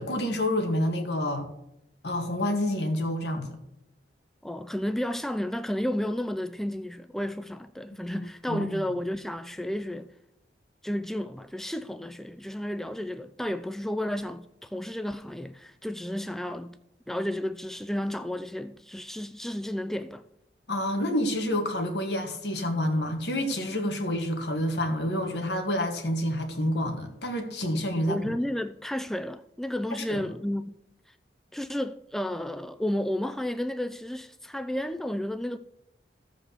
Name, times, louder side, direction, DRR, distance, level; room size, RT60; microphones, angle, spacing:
voice 1, 0.0-1.5 2.0-3.6 8.1-8.2 8.5-8.8 20.7-28.2 30.1-30.3, left 1 dB, 70° left, 1.9 m, -28 dB
voice 2, 4.4-10.1 10.8-16.8 17.1-20.2 28.1-30.8 31.5-35.6, left 1 dB, ahead, 0.3 m, -32 dB
14.0 x 4.9 x 7.2 m
head